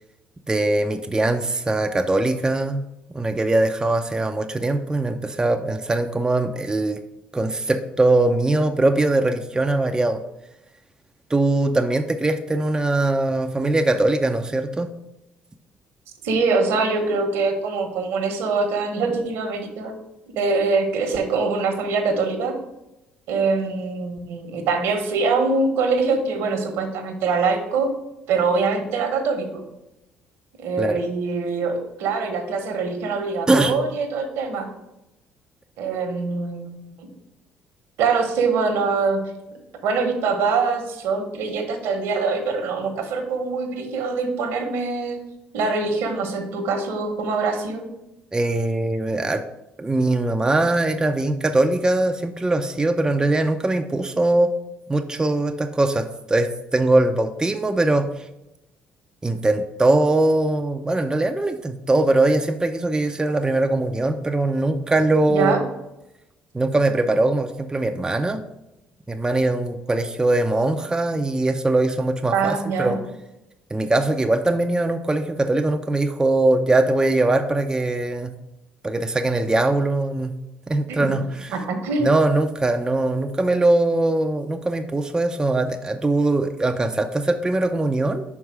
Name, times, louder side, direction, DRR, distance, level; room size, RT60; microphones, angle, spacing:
voice 1, 0.5-2.8 3.1-7.0 7.3-10.2 11.3-14.9 30.8-31.0 33.5-33.7 48.3-49.4 49.8-54.5 54.9-58.3 59.2-65.7 66.5-68.4 69.1-73.0 73.7-78.3 78.8-80.4 80.7-81.6 82.0-88.2, right 2 dB, 15° right, 6 dB, 0.5 m, -21 dB
voice 2, 16.2-19.9 20.3-22.5 23.3-27.9 28.3-29.6 30.6-34.7 35.8-37.1 38.0-39.2 39.8-45.2 45.5-47.8 65.3-65.6 72.3-73.0 80.9-81.1 81.5-82.1, right 4 dB, 75° right, 5 dB, 1.1 m, -23 dB
5.4 x 4.7 x 4.8 m, 0.91 s
hypercardioid pair, 60°, 4 cm